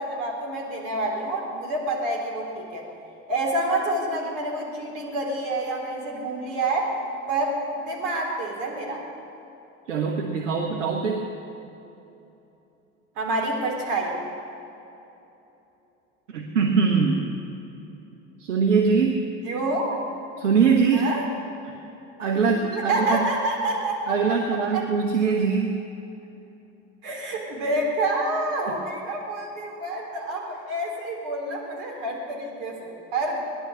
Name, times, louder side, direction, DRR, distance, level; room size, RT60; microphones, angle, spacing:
voice 1, 0.0-2.8 3.3-6.9 7.3-9.0 13.2-14.2 19.4-20.0 20.9-21.2 22.5-24.4 24.7-24.8 27.0-33.4, right 2 dB, 65° right, -1 dB, 3.9 m, -28 dB
voice 2, 9.9-11.3 16.3-17.3 18.4-19.3 20.4-21.1 21.6-21.8 22.2-23.2 24.1-25.8 28.7-28.8, right 5 dB, 85° right, 2 dB, 1.2 m, -22 dB
18.0 x 11.5 x 6.5 m, 3.0 s
hypercardioid pair, 70°, 36 cm